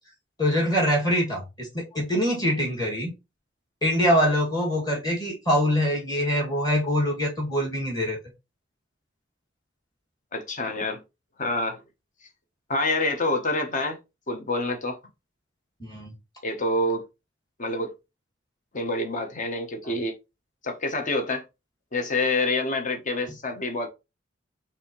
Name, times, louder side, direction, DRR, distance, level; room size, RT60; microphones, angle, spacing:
voice 1, 0.4-3.1 3.8-8.2 15.8-16.1, equal, 20° left, 2.1 m, -24 dB
voice 2, 10.3-11.0 11.4-11.8 12.7-14.0 14.3-15.0 16.4-17.0 17.6-17.9 18.7-20.2 20.6-21.4 21.9-23.9, left 2 dB, 45° left, 0.9 m, -27 dB
6.0 x 2.7 x 3.0 m
head